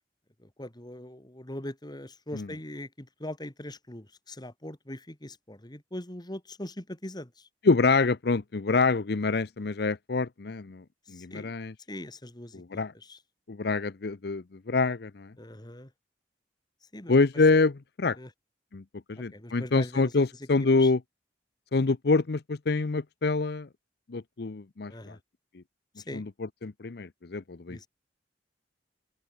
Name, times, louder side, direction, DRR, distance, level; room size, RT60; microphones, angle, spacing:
voice 1, 0.4-7.5 11.1-11.5 11.9-13.2 15.4-15.9 16.9-17.2 18.2-18.3 19.2-20.1 20.8-20.9 24.9-25.2 26.0-26.2 27.7-27.9, left 1 dB, 25° left, 2.7 m, -41 dB
voice 2, 7.6-11.7 12.5-12.9 13.5-15.3 17.1-18.2 18.7-18.8 19.1-21.0 21.7-23.7 24.1-25.2 26.1-27.9, left 3 dB, 65° left, 0.7 m, -26 dB
open air
head